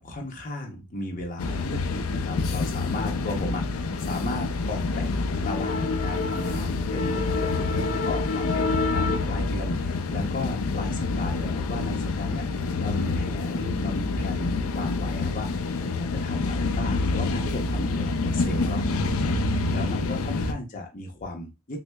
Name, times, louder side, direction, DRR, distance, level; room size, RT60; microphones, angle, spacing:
voice 1, 0.0-5.1 5.4-18.8 19.2-21.8, left 1 dB, 40° left, 1 dB, 0.6 m, -35 dB
sound 1, 1.4-20.5, left 3 dB, 85° left, 0.4 m, -27 dB
6.1 x 2.0 x 2.2 m, 0.27 s
head